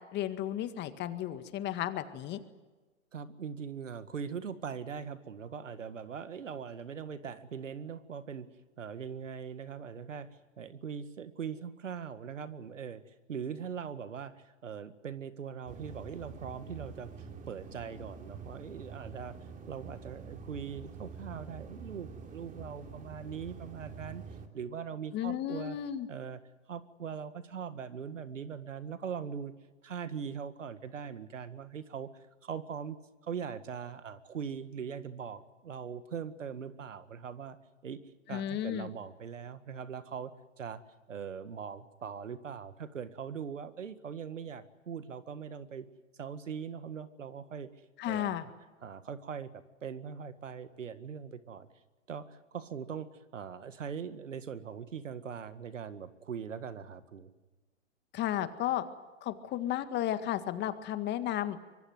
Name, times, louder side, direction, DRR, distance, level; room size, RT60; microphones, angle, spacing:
voice 1, 0.1-2.4 25.1-26.1 38.3-38.9 48.0-48.5 58.1-58.8 59.2-61.6, left 12 dB, 30° left, 10 dB, 1.9 m, -33 dB
voice 2, 3.1-8.5 8.8-19.4 19.7-24.2 24.5-25.8 26.1-26.4 26.7-29.5 29.8-33.0 33.2-37.6 37.8-38.0 38.3-40.3 40.6-40.8 41.1-45.9 46.2-47.7 48.1-48.4 48.8-51.7 52.1-57.3, right 7 dB, 80° right, 12 dB, 1.9 m, -41 dB
sound 1, 15.7-24.5, right 5 dB, 20° right, 3.0 m, -47 dB
25.0 x 23.5 x 8.0 m, 1.2 s
hypercardioid pair, 115°, 37 cm